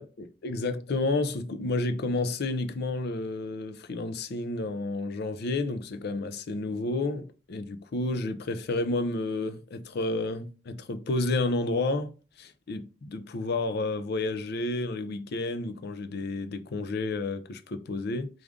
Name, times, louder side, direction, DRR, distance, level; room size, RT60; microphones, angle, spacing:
voice 1, 0.0-12.1 12.4-18.3, left 2 dB, 55° left, 0.5 m, -31 dB
4.8 x 2.5 x 3.5 m
head